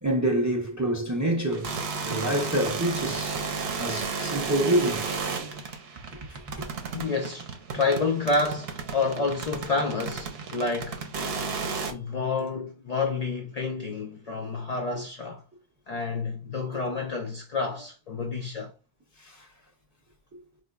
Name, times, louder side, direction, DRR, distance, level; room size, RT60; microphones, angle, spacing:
voice 1, 0.0-1.7 2.0-3.5 3.8-5.1 6.3-6.7 14.9-15.0 16.7-16.8 19.2-19.5, right 1 dB, 25° right, 0.4 m, -27 dB
sound 1, 1.5-11.9, right 5 dB, 65° right, 0.8 m, -33 dB
voice 2, 6.9-11.0 11.9-15.4 15.9-18.7, left 3 dB, 65° left, 0.4 m, -29 dB
4.2 x 2.6 x 2.3 m
omnidirectional pair, 1.2 m